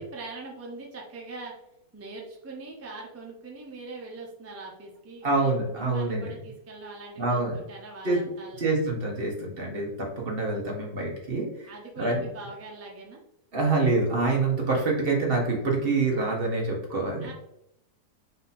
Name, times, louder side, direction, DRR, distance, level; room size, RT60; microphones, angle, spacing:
voice 1, 0.0-1.5 1.9-8.7 11.7-13.2 17.2-17.3, right 3 dB, 20° right, -1 dB, 0.4 m, -42 dB
voice 2, 5.2-6.3 7.2-7.6 8.0-8.2 8.6-11.7 12.0-12.2 13.5-17.3, right 3 dB, 40° right, -1 dB, 1.1 m, -26 dB
4.0 x 2.8 x 4.0 m, 0.80 s
omnidirectional pair, 1.7 m